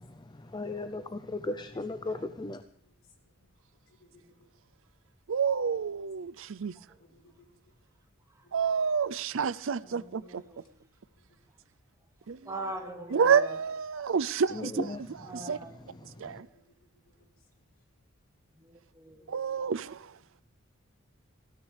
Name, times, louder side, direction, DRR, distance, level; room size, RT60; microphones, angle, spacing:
voice 1, 0.0-2.6 14.5-15.3 16.0-16.4, left 2 dB, 20° left, 0.6 m, -37 dB
voice 2, 1.7-2.2 2.8-3.5 3.9-4.5 5.7-7.6 8.4-8.5 9.2-9.3 10.0-10.7 11.0-11.4 15.9-17.3 19.2-19.7 20.2-20.4, left 2 dB, 75° left, 3.9 m, -63 dB
voice 3, 5.3-6.7 8.5-10.2 12.3-12.4 13.1-14.9 15.5-15.6 16.2-16.5 19.3-20.0, right 6 dB, 70° right, 0.5 m, -28 dB
voice 4, 6.7-7.4 8.3-8.5 9.7-10.9 12.4-13.6 15.2-16.7 18.5-19.7, right 1 dB, 15° right, 2.3 m, -44 dB
19.0 x 16.5 x 3.4 m
head